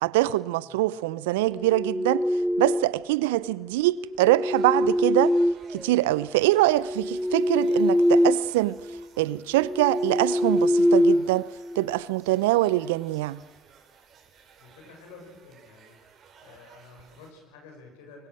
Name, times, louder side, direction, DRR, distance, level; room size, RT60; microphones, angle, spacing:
voice 1, 0.0-2.2 2.6-5.3 5.7-8.8 9.2-11.5 11.8-13.4, right 17 dB, 75° right, 0.7 m, -24 dB
sound 1, 1.6-3.1 4.1-6.2 6.6-8.5 8.8-9.0 9.5-11.9, left 1 dB, 5° left, 0.8 m, -24 dB
sound 2, 4.5-17.3, right 6 dB, 50° right, 5.9 m, -55 dB
voice 2, 14.6-16.0 16.4-18.3, left 3 dB, 75° left, 6.9 m, -50 dB
24.5 x 23.5 x 6.4 m
hypercardioid pair, 55°, 0 cm